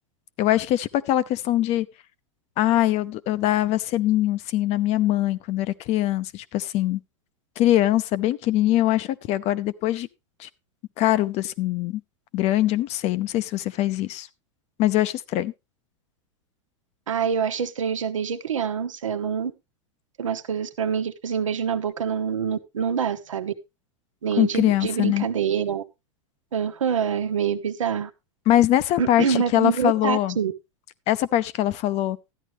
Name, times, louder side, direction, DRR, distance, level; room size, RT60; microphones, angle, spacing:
voice 1, 0.4-1.9 2.6-7.0 7.6-10.1 10.4-10.5 11.0-12.0 12.3-14.3 14.8-15.5 24.4-25.3 28.5-30.4 31.1-32.2, left 14 dB, 45° left, 0.7 m, -22 dB
voice 2, 17.1-19.5 20.2-23.5 24.2-25.8 26.5-28.1 29.0-30.5, right 7 dB, 90° right, 1.1 m, -26 dB
13.0 x 9.9 x 3.1 m
hypercardioid pair, 105°, 16 cm